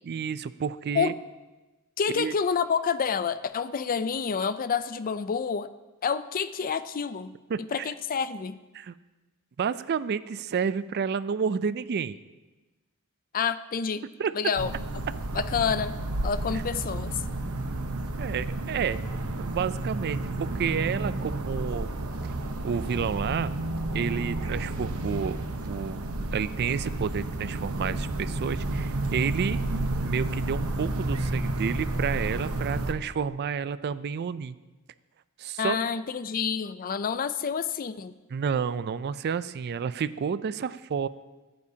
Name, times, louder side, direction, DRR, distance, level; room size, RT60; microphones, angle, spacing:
voice 1, 0.0-1.1 2.1-2.3 7.5-7.9 8.7-8.9 9.6-12.2 14.2-14.3 16.5-16.6 18.2-19.0 19.4-21.9 22.6-23.5 23.9-26.0 26.3-29.6 30.0-34.6 35.4-35.8 38.3-41.1, right 6 dB, 50° right, 15 dB, 0.4 m, -30 dB
voice 2, 2.0-5.7 6.0-7.3 7.7-8.6 13.3-14.0 14.3-14.7 15.3-15.9 16.2-17.2 35.6-38.1, left 6 dB, 40° left, 13 dB, 0.4 m, -28 dB
sound 1, 14.6-32.9, right 2 dB, 70° right, 1.0 m, -31 dB
21.0 x 9.5 x 2.8 m, 1.2 s
head